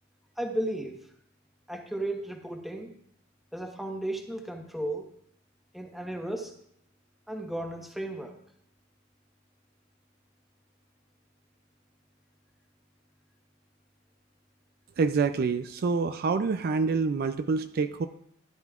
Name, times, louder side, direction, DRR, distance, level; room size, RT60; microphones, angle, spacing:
voice 1, 0.4-1.0 1.7-2.9 3.5-5.1 5.7-6.5 7.3-8.3, right 1 dB, ahead, 2 dB, 1.2 m, -34 dB
voice 2, 15.0-18.1, right 4 dB, 50° right, 9 dB, 0.4 m, -27 dB
14.0 x 10.0 x 2.4 m, 0.71 s
head